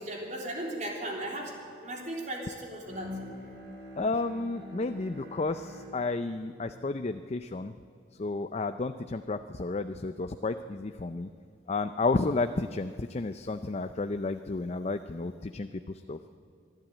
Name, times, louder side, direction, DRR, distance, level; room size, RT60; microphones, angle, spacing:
voice 1, 0.0-3.2, right 1 dB, 45° right, 0 dB, 3.4 m, -37 dB
Bowed string instrument, 2.8-8.3, left 1 dB, 60° right, 4.9 m, -46 dB
voice 2, 4.0-7.7 8.2-11.3 11.7-16.2, left 3 dB, 35° left, 9 dB, 0.5 m, -32 dB
24.0 x 12.0 x 9.1 m, 2.5 s
head